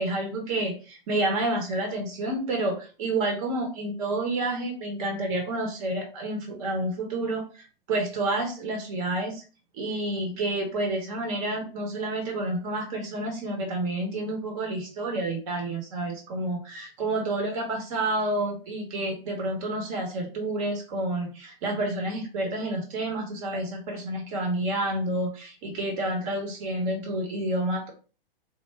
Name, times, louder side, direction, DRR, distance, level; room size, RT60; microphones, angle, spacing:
voice 1, 0.0-9.4 9.7-27.9, right 2 dB, 35° right, 1 dB, 1.0 m, -29 dB
3.4 x 2.2 x 3.2 m, 0.35 s
figure-of-eight pair, 120°, 30 cm